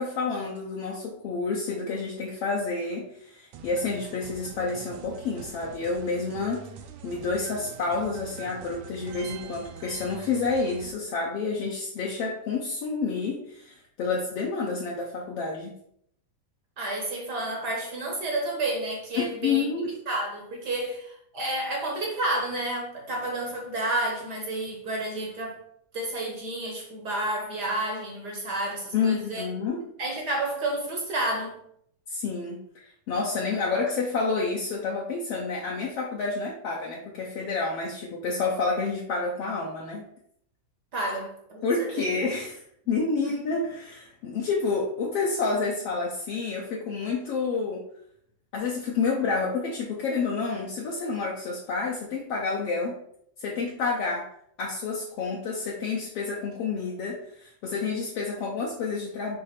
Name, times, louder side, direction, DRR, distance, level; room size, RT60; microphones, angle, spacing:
voice 1, 0.0-6.7 7.0-15.8 19.2-19.9 28.9-29.8 32.1-40.1 41.6-47.8 48.5-53.0 53.4-54.3 54.6-59.4, left 4 dB, 65° left, -2 dB, 1.7 m, -29 dB
sound 1, 3.5-10.9, right 7 dB, 75° right, 2.0 m, -44 dB
voice 2, 16.8-19.6 20.1-25.6 25.9-29.4 30.0-31.6 40.9-42.1 43.2-43.4, right 1 dB, 50° right, 0 dB, 1.3 m, -30 dB
6.6 x 3.3 x 5.9 m, 0.69 s
omnidirectional pair, 3.3 m